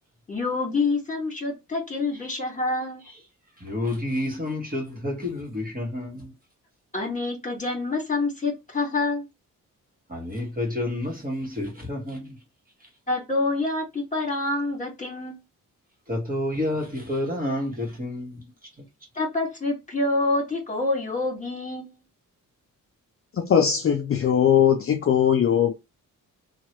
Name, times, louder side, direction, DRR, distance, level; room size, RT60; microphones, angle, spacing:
voice 1, 0.3-3.0 6.9-9.3 13.1-15.4 19.1-22.0, left 3 dB, 25° left, 1.6 m, -27 dB
voice 2, 3.6-6.4 10.1-12.4 16.1-18.5, left 1 dB, 25° right, 1.4 m, -29 dB
voice 3, 23.3-25.7, left 9 dB, 45° left, 0.5 m, -20 dB
2.9 x 2.3 x 2.9 m
cardioid pair, 80°, 33 cm